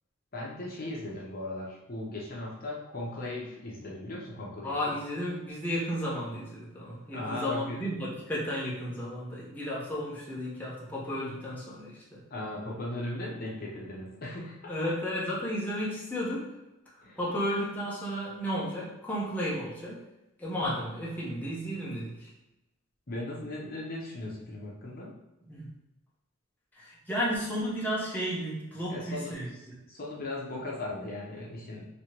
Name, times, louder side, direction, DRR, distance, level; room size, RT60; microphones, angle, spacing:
voice 1, 0.3-4.9 7.1-7.8 12.3-14.6 17.0-17.2 23.1-25.1 28.9-29.3 29.9-31.9, left 1 dB, 50° left, -4 dB, 0.8 m, -37 dB
voice 2, 4.6-12.2 14.7-16.6 16.9-20.0 20.4-22.3 25.5-25.7 26.7-29.5, equal, 10° left, -7 dB, 0.8 m, -33 dB
3.1 x 2.9 x 2.9 m, 0.96 s
head